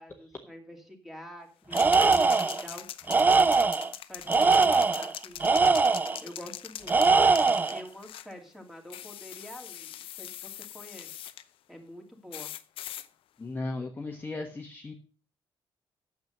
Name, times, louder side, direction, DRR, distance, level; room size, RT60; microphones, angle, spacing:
voice 1, 0.0-3.6 4.1-5.6 6.2-7.2 7.7-11.1 11.7-12.5, equal, ahead, 3 dB, 2.5 m, -46 dB
sound 1, 1.7-8.3 8.9-11.4 12.3-13.1, left 12 dB, 90° left, 0.7 m, -42 dB
Tools, 1.7-2.6 3.1-3.9 4.3-6.2 6.9-7.8, right 4 dB, 20° right, 0.5 m, -22 dB
voice 2, 13.4-14.9, left 2 dB, 20° left, 2 dB, 1.4 m, -36 dB
9.2 x 7.5 x 6.7 m, 0.37 s
cardioid pair, 150°, 9 cm